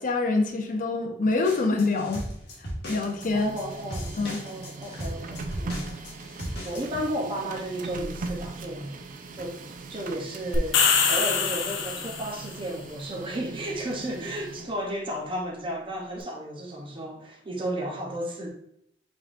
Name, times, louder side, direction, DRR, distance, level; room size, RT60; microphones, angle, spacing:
voice 1, 0.0-2.2 2.9-3.5 4.2-4.4, left 3 dB, 45° left, 0.7 m, -25 dB
sound 1, 1.4-7.0, equal, 65° left, 1.5 m, -37 dB
Printer, 2.8-14.9, right 3 dB, 45° right, 0.4 m, -40 dB
voice 2, 3.3-4.1 4.4-5.9 6.6-8.9 9.3-10.8 11.1-18.5, right 1 dB, 30° right, 0.8 m, -33 dB
sound 2, 10.5-12.5, left 6 dB, 85° left, 0.7 m, -24 dB
4.9 x 3.7 x 2.5 m
head